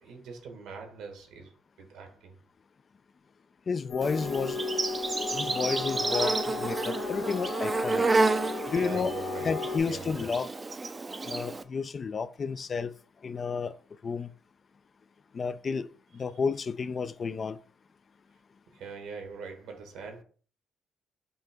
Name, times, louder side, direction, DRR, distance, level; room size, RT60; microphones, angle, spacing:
voice 1, 0.0-1.5 1.8-2.4 8.7-10.1 18.7-20.2, right 5 dB, 85° right, 1.3 m, -42 dB
voice 2, 3.7-4.6 5.3-8.1 8.7-9.1 9.4-10.5 11.3-12.9 13.2-13.7 14.0-14.3 15.3-15.9 16.1-17.6, left 5 dB, 40° left, 0.3 m, -31 dB
sound 1, 3.9-9.8, left 5 dB, 65° left, 0.8 m, -35 dB
Insect, 4.0-11.6, right 3 dB, 25° right, 0.4 m, -30 dB
5.4 x 2.8 x 3.5 m
cardioid pair, 90°, 0 cm